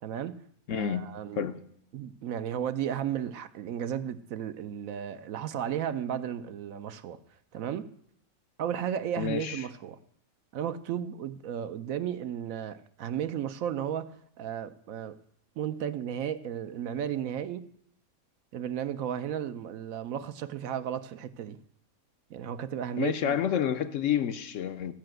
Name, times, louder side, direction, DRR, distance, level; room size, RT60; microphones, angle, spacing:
voice 1, 0.0-0.4 0.7-1.5 1.9-7.2 7.5-7.9 8.6-10.0 10.5-15.2 15.6-17.7 18.5-21.6 22.3-23.4, right 9 dB, 70° right, 1.0 m, -34 dB
voice 2, 0.7-1.1 1.3-1.6 9.2-9.6 23.0-24.9, left 9 dB, 65° left, 0.9 m, -29 dB
14.5 x 5.8 x 7.7 m
omnidirectional pair, 1.5 m